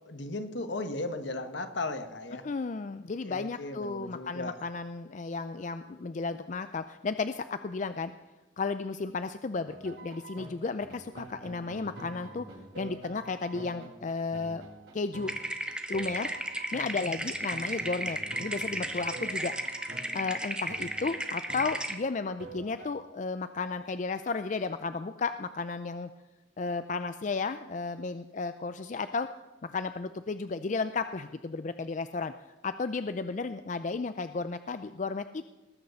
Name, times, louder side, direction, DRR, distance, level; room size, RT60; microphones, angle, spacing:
voice 1, 0.1-2.5 3.2-4.6 16.9-17.2, left 2 dB, 70° left, 9 dB, 1.3 m, -36 dB
voice 2, 2.4-8.1 8.6-12.5 12.8-14.6 14.9-15.3 15.9-16.3 16.7-19.5 20.1-26.1 26.6-29.3 29.6-32.3 32.6-35.4, left 4 dB, 40° left, 11 dB, 0.4 m, -33 dB
sound 1, 9.7-22.9, right 2 dB, 65° right, 5.4 m, -47 dB
sound 2, 15.3-22.0, right 1 dB, 5° right, 0.9 m, -35 dB
20.0 x 6.6 x 6.9 m, 1.1 s
head